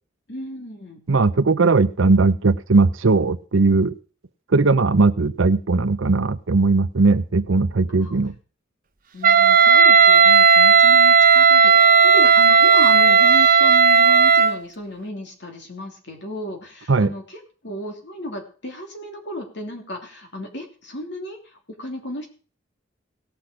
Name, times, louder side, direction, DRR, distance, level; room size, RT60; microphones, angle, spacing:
voice 1, 0.3-1.0 8.0-8.2 9.1-22.3, left 1 dB, 65° left, 2 dB, 3.0 m, -34 dB
voice 2, 1.1-3.9 4.5-8.3 16.9-17.1, right 3 dB, 85° right, 14 dB, 0.7 m, -18 dB
Wind instrument woodwind instrument, 9.2-14.6, right 6 dB, 45° right, 0.9 m, -13 dB
18.0 x 6.1 x 5.0 m, 0.39 s
head